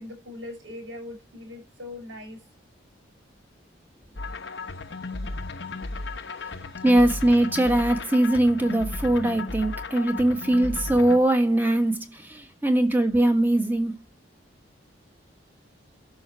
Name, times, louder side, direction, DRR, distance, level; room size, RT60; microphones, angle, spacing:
voice 1, 0.0-2.4 4.6-6.9, left 2 dB, 85° right, 6.8 m, -43 dB
sound 1, 4.2-11.2, left 3 dB, 65° left, 1.0 m, -35 dB
voice 2, 6.8-14.0, right 1 dB, 10° right, 1.5 m, -21 dB
12.5 x 6.4 x 4.7 m
head